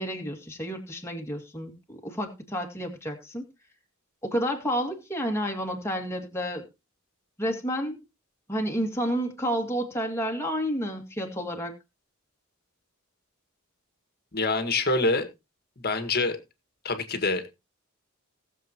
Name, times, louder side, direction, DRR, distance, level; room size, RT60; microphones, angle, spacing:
voice 1, 0.0-3.5 4.2-6.7 7.4-8.0 8.5-11.7, equal, 10° left, 2.3 m, -30 dB
voice 2, 14.3-15.3 15.8-16.4 16.8-17.5, left 3 dB, 45° left, 1.8 m, -26 dB
19.0 x 7.3 x 3.0 m
head